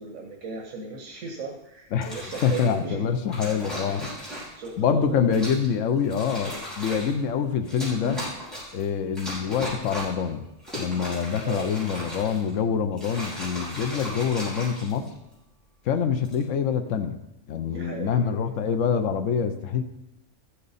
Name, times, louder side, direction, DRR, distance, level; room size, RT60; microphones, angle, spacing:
voice 1, 0.0-3.1 4.3-5.4 11.4-11.7 17.7-18.5, right 3 dB, 85° right, 1 dB, 1.6 m, -36 dB
voice 2, 1.9-4.1 4.8-8.2 8.7-10.5 10.8-15.1 15.8-17.2 17.5-19.8, left 7 dB, 75° left, 7 dB, 1.1 m, -25 dB
sound 1, 1.9-2.7 3.3-4.7 5.3-5.7 6.0-7.2 7.7-8.8 9.2-10.2 10.6-12.5 12.9-15.3 16.1-16.4, equal, ahead, 5.1 m, -36 dB
14.0 x 8.5 x 4.1 m, 0.92 s
omnidirectional pair, 1.3 m